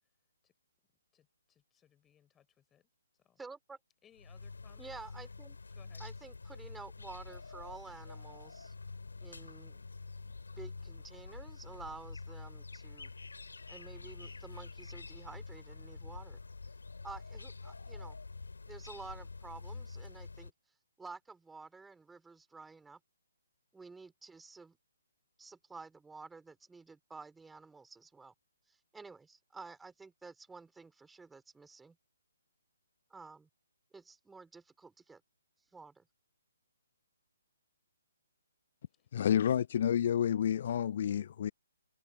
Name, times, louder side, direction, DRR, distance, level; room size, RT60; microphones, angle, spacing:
voice 1, 1.1-2.9 3.2-3.4 4.0-5.0 5.7-6.1, left 9 dB, 10° left, 4.4 m, -66 dB
voice 2, 3.4-3.8 4.8-5.6 6.0-8.7 9.2-9.8 10.2-13.1 13.7-16.4 17.0-18.2 18.7-20.5 21.0-23.0 23.7-24.8 25.4-28.3 28.7-32.0 33.1-33.5 33.9-35.2 35.7-36.1, right 4 dB, 5° right, 4.0 m, -51 dB
sound 1, 4.2-20.5, left 4 dB, 70° left, 2.9 m, -47 dB
voice 3, 39.1-41.5, left 9 dB, 45° left, 0.4 m, -29 dB
figure-of-eight pair, 135°, 0 cm